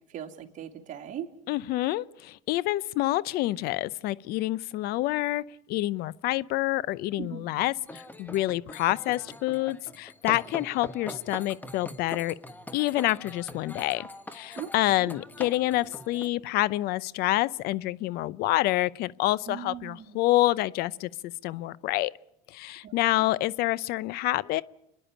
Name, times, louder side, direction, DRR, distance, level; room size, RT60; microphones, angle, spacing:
voice 1, 0.1-1.3 7.2-7.5 14.5-14.7 15.0-15.1 19.5-20.2 22.8-23.3, right 10 dB, 50° right, 2.6 m, -39 dB
voice 2, 1.5-5.4 5.7-12.4 12.7-22.1 22.5-24.6, left 17 dB, 65° left, 0.7 m, -27 dB
sound 1, 7.9-16.3, left 2 dB, 10° left, 1.4 m, -42 dB
29.0 x 11.0 x 9.9 m
supercardioid pair, 100°, 17 cm